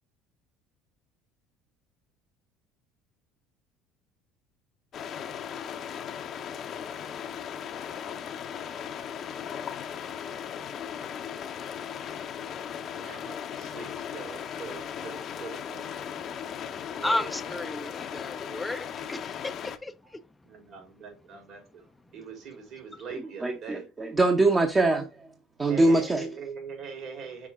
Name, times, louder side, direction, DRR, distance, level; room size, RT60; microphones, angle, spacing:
sound 1, 4.9-19.8, left 8 dB, 50° left, 0.7 m, -37 dB
voice 1, 12.9-16.7 16.9-17.7 19.5-19.6 20.0-20.1 20.4-23.8 25.5-27.5, right 5 dB, 60° right, 4.0 m, -43 dB
voice 2, 16.0-20.2, left 2 dB, 10° left, 0.5 m, -34 dB
voice 3, 23.1-25.1 25.6-26.3, right 2 dB, 25° right, 0.9 m, -23 dB
5.9 x 4.5 x 3.7 m
supercardioid pair, 90°, 0 cm